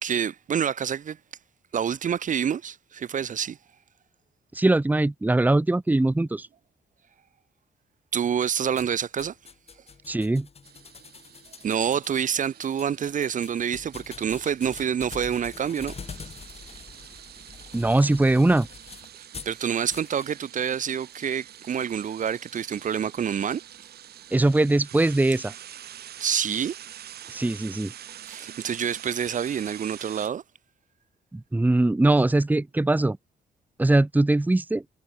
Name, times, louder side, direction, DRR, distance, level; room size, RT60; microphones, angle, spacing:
voice 1, 0.0-1.2 1.7-3.6 8.1-9.3 11.6-15.9 19.5-23.6 26.2-26.7 28.2-30.4, right 8 dB, 50° right, 0.9 m, -27 dB
voice 2, 4.5-6.5 10.1-10.5 17.7-18.7 24.3-25.5 27.3-27.9 31.3-33.2 33.8-34.8, right 2 dB, 10° right, 0.9 m, -21 dB
sound 1, 8.8-19.6 19.9-20.3, left 5 dB, 40° left, 3.5 m, -44 dB
sound 2, 10.6-30.3, right 11 dB, 75° right, 2.5 m, -46 dB
cardioid pair, 95°, 16 cm